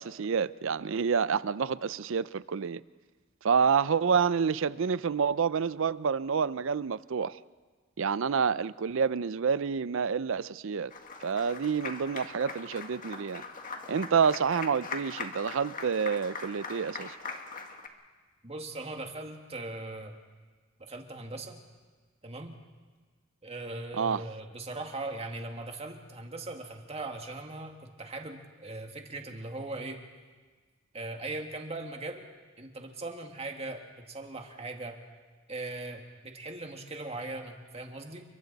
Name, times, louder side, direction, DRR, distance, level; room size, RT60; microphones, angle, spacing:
voice 1, 0.0-2.8 3.4-7.4 8.0-10.9 11.2-13.4 13.9-17.1 24.0-24.2, right 6 dB, 70° right, 0.5 m, -28 dB
Applause, 10.9-17.9, left 4 dB, 40° left, 1.7 m, -41 dB
voice 2, 18.4-20.1 20.8-21.6 22.2-22.5 23.4-30.0 30.9-32.3 32.6-35.0 35.5-38.2, right 2 dB, 30° right, 2.0 m, -39 dB
29.5 x 23.5 x 4.1 m
head